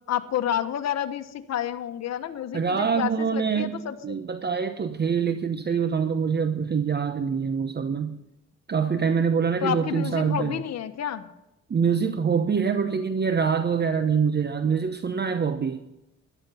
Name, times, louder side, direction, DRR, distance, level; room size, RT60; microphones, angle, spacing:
voice 1, 0.1-4.2 9.6-11.3, left 9 dB, 60° left, 7 dB, 1.3 m, -30 dB
voice 2, 2.5-3.8 4.0-8.2 8.7-10.6 11.7-15.8, right 6 dB, 35° right, 9 dB, 0.9 m, -25 dB
14.0 x 11.0 x 5.6 m, 0.91 s
cardioid pair, 90°, 30 cm